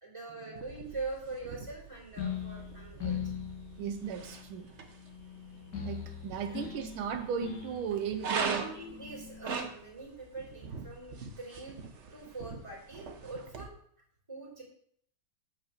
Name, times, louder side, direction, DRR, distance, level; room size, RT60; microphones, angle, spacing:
voice 1, 0.0-3.2 6.4-6.7 8.3-11.8 12.1-13.7 14.3-14.6, right 3 dB, 15° right, -4 dB, 3.1 m, -43 dB
sound 1, 0.6-13.6, right 5 dB, 45° right, 1.0 m, -42 dB
sound 2, 2.2-9.7, left 8 dB, 50° left, 2.1 m, -41 dB
voice 2, 3.0-3.3 3.8-4.7 5.8-8.7, right 8 dB, 80° right, 7 dB, 1.5 m, -36 dB
8.7 x 5.0 x 7.2 m, 0.64 s
omnidirectional pair, 2.3 m